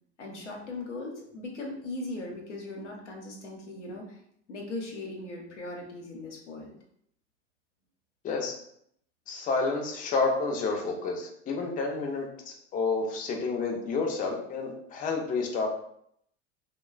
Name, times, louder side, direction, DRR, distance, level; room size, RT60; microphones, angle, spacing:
voice 1, 0.2-4.2 4.5-6.7, left 2 dB, 90° left, -1 dB, 0.8 m, -39 dB
voice 2, 9.3-15.7, left 4 dB, 25° left, 1 dB, 0.5 m, -30 dB
2.9 x 2.2 x 2.3 m, 0.69 s
hypercardioid pair, 90°, 35 cm